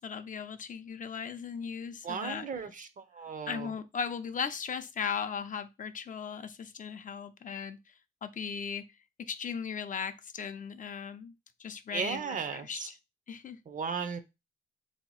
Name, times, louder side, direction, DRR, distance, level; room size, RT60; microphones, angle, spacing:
voice 1, 0.0-2.6 3.5-7.8 8.2-8.9 9.2-11.3 11.6-13.0 13.3-13.6, left 6 dB, 40° left, 0.5 m, -37 dB
voice 2, 2.0-3.7 11.9-12.9 13.7-14.2, right 6 dB, 40° right, 0.6 m, -36 dB
3.5 x 2.8 x 4.7 m
cardioid pair, 90°, 20 cm